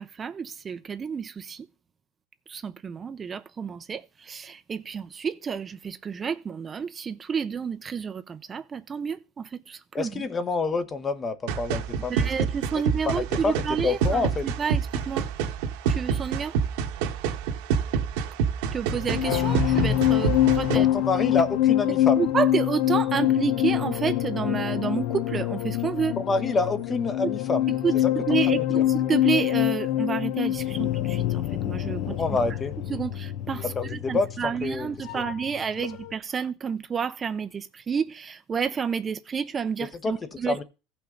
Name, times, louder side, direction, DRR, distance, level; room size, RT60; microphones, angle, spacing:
voice 1, 0.0-1.7 2.5-10.2 12.1-15.3 15.9-16.5 18.7-20.9 22.2-26.2 27.2-27.3 27.8-32.1 32.9-33.6 33.9-40.6, right 6 dB, 25° right, 0.6 m, -30 dB
voice 2, 9.9-12.3 13.0-13.5 13.8-14.5 20.7-22.3 26.2-28.8 32.1-32.7 33.6-35.3 39.8-40.6, left 3 dB, 25° left, 1.0 m, -28 dB
sound 1, 11.5-20.8, right 6 dB, 75° right, 1.5 m, -27 dB
sound 2, 18.9-35.5 35.8-36.1, left 13 dB, 60° left, 0.7 m, -25 dB
15.5 x 5.8 x 3.9 m
supercardioid pair, 120°, 0 cm